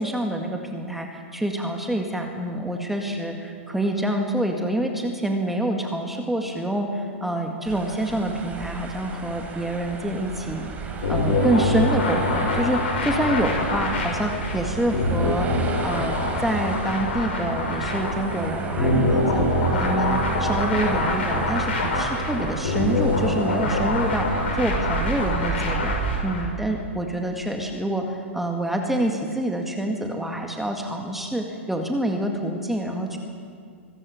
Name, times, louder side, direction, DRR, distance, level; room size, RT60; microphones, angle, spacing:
voice 1, 0.0-15.5 15.8-33.2, right 1 dB, 5° right, 2 dB, 2.0 m, -27 dB
sound 1, 7.6-26.2, right 4 dB, 20° right, 3.7 m, -33 dB
sound 2, 10.8-25.8, right 4 dB, 50° right, 5.7 m, -37 dB
sound 3, 11.0-26.5, left 2 dB, 65° left, 6.1 m, -25 dB
24.5 x 14.0 x 8.4 m, 2.1 s
figure-of-eight pair, 110°, 7 cm